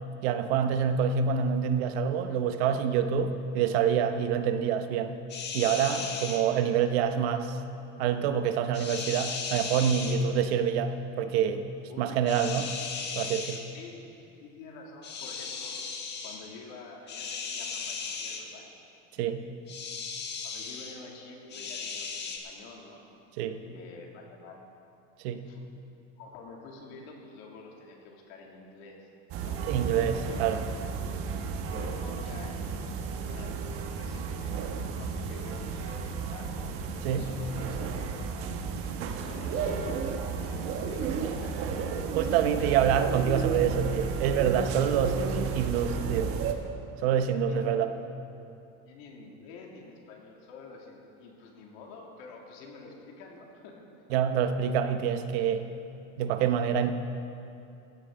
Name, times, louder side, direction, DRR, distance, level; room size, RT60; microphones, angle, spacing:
voice 1, 0.2-5.2 5.5-7.6 8.0-11.7 12.0-12.7 13.1-13.6 19.2-19.4 23.4-23.6 25.2-25.4 29.6-30.6 37.0-37.3 42.1-45.2 45.5-46.4 47.0-47.9 54.1-55.7 56.2-56.9, right 8 dB, 85° right, 9 dB, 1.0 m, -26 dB
sound 1, 5.3-6.4 8.7-10.2 12.3-13.6 15.0-16.4 17.1-18.4 19.7-21.0 21.5-22.4, left 5 dB, 35° left, 1.5 m, -36 dB
voice 2, 11.9-12.2 13.7-14.0 14.4-15.8 16.2-18.7 20.4-23.0 23.6-24.6 25.4-25.6 26.2-29.1 29.4-29.6 30.2-30.5 31.7-36.7 37.2-37.8 38.1-38.5 39.2-42.0 42.5-43.1 47.3-47.9 48.8-53.8, left 4 dB, 75° left, 0 dB, 2.6 m, -48 dB
sound 2, 29.3-46.5, right 6 dB, 45° right, 1.1 m, -33 dB
16.0 x 13.0 x 3.8 m, 2.7 s
cardioid pair, 140°, 30 cm